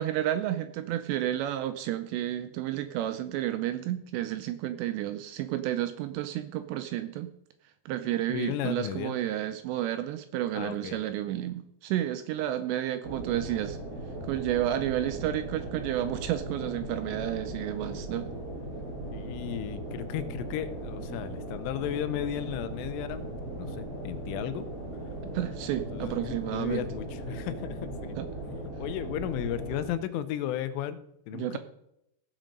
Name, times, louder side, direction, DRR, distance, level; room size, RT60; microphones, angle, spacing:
voice 1, 0.0-7.3 7.9-13.8 14.2-18.3 25.3-26.8 28.2-28.3 31.3-31.6, right 12 dB, 80° right, 10 dB, 2.6 m, -31 dB
voice 2, 8.3-9.1 10.5-11.0 19.1-23.3 23.6-24.6 25.8-28.2 28.8-31.0 31.3-31.6, left 11 dB, 90° left, 11 dB, 3.3 m, -34 dB
sound 1, 13.0-29.9, right 1 dB, 50° right, 6.2 m, -38 dB
15.5 x 7.6 x 5.3 m, 0.79 s
omnidirectional pair, 5.5 m